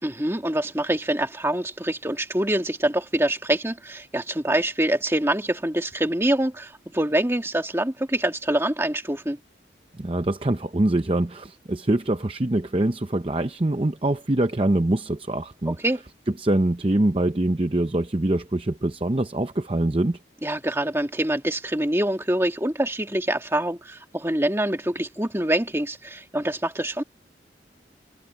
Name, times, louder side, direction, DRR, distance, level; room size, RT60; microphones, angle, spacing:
voice 1, 0.0-9.4 15.7-16.0 20.4-27.0, right 1 dB, 15° right, 1.8 m, -25 dB
voice 2, 9.9-15.8 16.4-20.2, right 1 dB, 30° right, 0.7 m, -24 dB
head